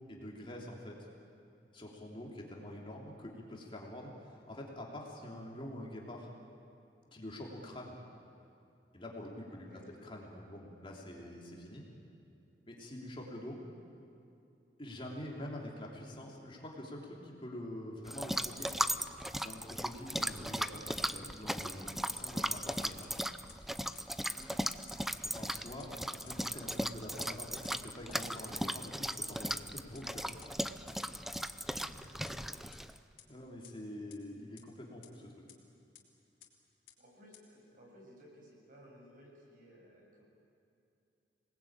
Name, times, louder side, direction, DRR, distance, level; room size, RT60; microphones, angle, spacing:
voice 1, 0.1-1.1 1.7-6.3 7.1-7.9 8.9-11.9 12.6-13.6 14.8-18.7 19.4-23.2 25.2-30.3 33.3-35.3, left 1 dB, 30° left, -2 dB, 3.2 m, -46 dB
voice 2, 9.6-9.9 20.2-20.4 24.3-24.8 31.9-32.5 37.0-40.2, equal, 50° right, -2 dB, 7.6 m, -58 dB
sound 1, 18.1-33.0, equal, ahead, 0.6 m, -37 dB
sound 2, 23.0-23.1 23.5-23.6 23.9-24.0 24.4-24.5 24.9-25.0 25.3-25.4 25.8-25.9 26.3-26.4 26.7-26.8 27.2-27.3 27.6-27.7 28.1-28.2 28.6-28.7 29.0-29.1 29.5-29.6 29.9-30.0 30.4-30.5 30.9-31.0 31.3-31.4 31.8-31.9 32.3-32.4 32.7-32.8 33.2-33.3 33.6-33.7 34.1-34.2 34.6-34.7 35.0-35.1 35.5-35.6 35.9-36.0 36.4-36.5 36.9-37.0 37.3-37.4, left 12 dB, 55° left, 3.2 m, -55 dB
27.0 x 19.5 x 8.9 m, 2.7 s
head